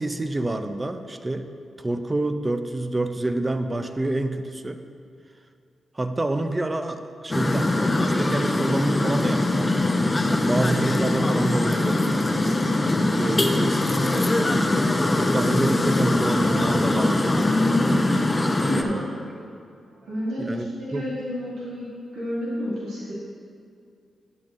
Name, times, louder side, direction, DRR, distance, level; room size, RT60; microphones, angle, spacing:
voice 1, 0.0-1.5 1.8-4.8 5.9-9.9 10.5-12.0 12.9-14.9 15.2-17.4 18.7-19.1 20.4-21.1, right 2 dB, 25° right, 8 dB, 0.7 m, -28 dB
sound 1, 7.3-18.8, left 2 dB, 30° left, 0.8 m, -22 dB
voice 2, 18.6-19.4 19.9-23.1, equal, 85° right, -10 dB, 2.4 m, -31 dB
12.0 x 8.8 x 2.6 m, 2.4 s
supercardioid pair, 50°, 0 cm